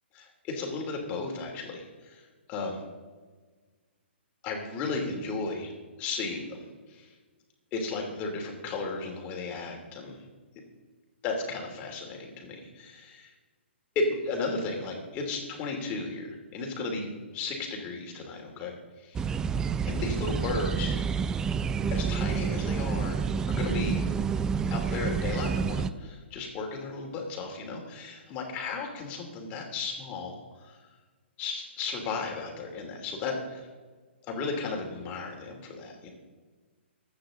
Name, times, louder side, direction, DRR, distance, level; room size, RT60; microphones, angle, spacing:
voice 1, 0.1-2.2 2.5-2.8 4.4-5.7 6.0-7.1 7.7-10.2 11.2-13.3 13.9-19.3 19.9-21.0 21.9-24.0 24.7-30.8 31.4-33.6 34.2-36.1, left 3 dB, 25° left, 1 dB, 3.0 m, -34 dB
sound 1, 19.1-25.9, right 6 dB, 10° right, 0.3 m, -29 dB
25.0 x 9.2 x 3.9 m, 1.4 s
hypercardioid pair, 150°, 6 cm